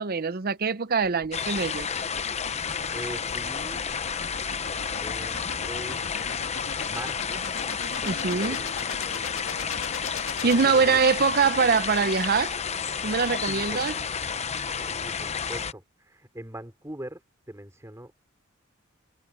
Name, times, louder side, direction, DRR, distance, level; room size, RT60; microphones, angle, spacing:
voice 1, 0.0-1.9 8.1-8.6 10.4-12.5 13.0-13.9, right 5 dB, 45° right, 0.7 m, -23 dB
sound 1, 1.0-11.3, left 5 dB, 70° left, 1.8 m, -40 dB
sound 2, 1.3-15.7, left 6 dB, 35° left, 0.8 m, -31 dB
voice 2, 2.9-3.8 5.0-6.0 6.8-7.4 8.3-8.7 10.4-11.0 13.4-13.8 14.7-17.2 17.5-18.1, right 1 dB, 15° right, 5.0 m, -41 dB
head